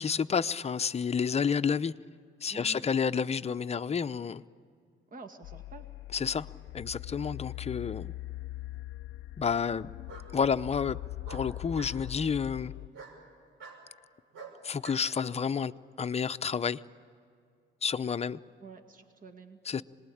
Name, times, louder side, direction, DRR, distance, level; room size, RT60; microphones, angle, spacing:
voice 1, 0.0-1.9 2.4-4.4 6.1-6.5 6.7-8.1 9.4-9.9 10.3-11.0 11.3-12.7 14.6-15.7 16.0-16.8 17.8-18.4 19.6-19.8, left 6 dB, 30° left, 11 dB, 0.7 m, -30 dB
voice 2, 2.5-2.9 5.1-5.9 18.6-19.6, right 3 dB, 45° right, 6 dB, 2.2 m, -48 dB
sound 1, 5.4-12.9, left 16 dB, 90° left, 0.6 m, -41 dB
Bark, 7.9-8.5 10.1-10.3 11.2-12.0 12.9-13.2 13.6-13.8 14.3-15.0, right 4 dB, 80° right, 5.7 m, -47 dB
26.5 x 20.5 x 8.6 m, 2.4 s
cardioid pair, 90°, 20 cm